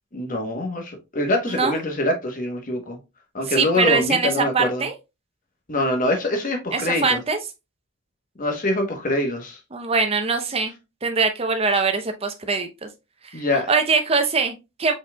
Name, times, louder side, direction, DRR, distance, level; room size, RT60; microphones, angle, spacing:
voice 1, 0.1-3.0 3.3-4.8 5.7-7.2 8.4-9.6 13.3-13.7, left 1 dB, 40° left, 1.0 m, -24 dB
voice 2, 1.5-1.8 3.5-4.9 6.7-7.4 9.7-10.7 11.0-12.9 13.2-13.4 13.7-15.0, right 4 dB, 30° right, 0.6 m, -22 dB
5.0 x 4.1 x 2.2 m
head